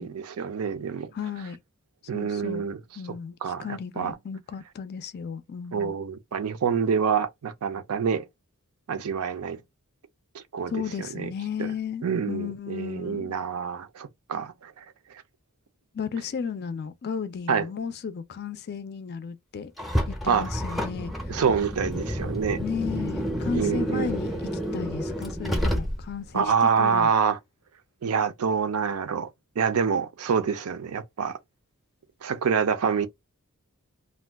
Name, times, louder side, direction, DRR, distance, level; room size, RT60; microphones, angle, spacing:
voice 1, 0.0-1.1 2.1-2.8 3.4-4.1 5.7-8.3 8.9-9.6 10.3-10.8 11.1-11.3 11.6-11.7 12.0-14.9 17.5-17.7 20.3-20.5 21.3-22.6 23.5-24.1 26.3-27.4 28.0-29.3 29.6-31.4 32.2-33.1, right 6 dB, 80° right, 0.5 m, -26 dB
voice 2, 1.1-1.6 2.1-2.6 3.0-5.9 10.7-13.3 15.9-19.7 20.1-21.1 22.6-27.1, left 6 dB, 45° left, 0.4 m, -34 dB
Car, 19.8-26.3, equal, ahead, 0.5 m, -29 dB
2.4 x 2.2 x 3.3 m
head